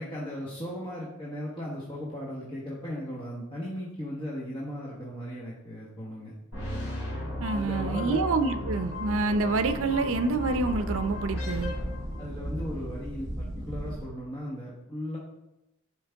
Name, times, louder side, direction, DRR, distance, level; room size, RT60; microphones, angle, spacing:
voice 1, 0.0-6.3 7.5-8.2 12.2-15.2, equal, 25° left, -6 dB, 1.3 m, -37 dB
sound 1, 6.5-12.7, left 1 dB, 75° left, 3.3 m, -35 dB
voice 2, 7.4-11.7, right 3 dB, 65° right, 9 dB, 0.6 m, -27 dB
sound 2, 8.7-14.1, right 1 dB, 15° right, 1.5 m, -38 dB
10.5 x 5.2 x 3.5 m, 0.92 s
head